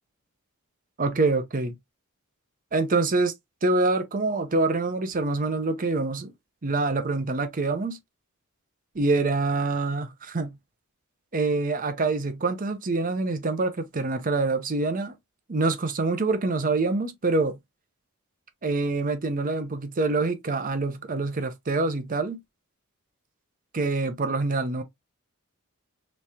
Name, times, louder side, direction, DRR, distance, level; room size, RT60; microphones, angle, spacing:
voice 1, 1.0-1.7 2.7-3.3 3.6-6.3 6.6-8.0 8.9-10.6 11.3-15.1 15.5-17.6 18.6-22.4 23.7-24.8, right 3 dB, 40° right, 0.6 m, -25 dB
3.3 x 3.1 x 2.7 m
head